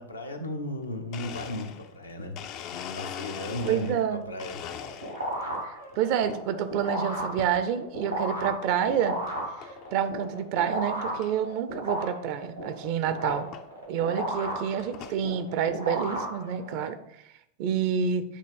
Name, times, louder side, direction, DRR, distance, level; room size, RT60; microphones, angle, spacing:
voice 1, 0.0-2.4 2.9-4.6, left 1 dB, 80° left, 3 dB, 0.9 m, -35 dB
Domestic sounds home sounds, 1.1-4.1 4.4-5.4 5.9-6.4 7.4-7.7 8.3-8.4 9.3-9.4 9.6-9.9 10.4-10.5 10.7-10.8 11.2-11.3 12.6-12.7 13.5-13.7 14.3-15.2, left 8 dB, 40° left, 0.5 m, -41 dB
voice 2, 3.7-4.2 5.6-9.2 9.9-13.5 13.9-17.0 17.6-18.2, right 8 dB, 45° right, 10 dB, 0.6 m, -28 dB
sound 1, 4.5-16.9, right 1 dB, 90° right, 2.8 m, -34 dB
8.4 x 3.1 x 5.3 m, 0.78 s
figure-of-eight pair, 90°, 0 cm